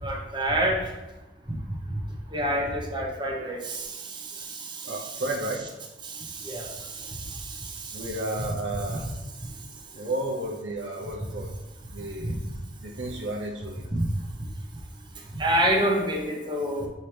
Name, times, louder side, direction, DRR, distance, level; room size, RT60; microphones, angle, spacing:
voice 1, 0.0-0.9 1.9-2.0 2.3-5.2 6.0-8.2 8.9-9.1 9.4-9.5 12.2-12.3 13.9-14.1 15.3-16.9, right 1 dB, 25° right, -1 dB, 1.0 m, -28 dB
voice 2, 4.8-5.7 7.9-9.0 9.9-11.5 11.9-12.4 12.8-13.9, right 1 dB, 80° right, -1 dB, 0.8 m, -32 dB
7.2 x 4.5 x 3.4 m, 1.1 s
head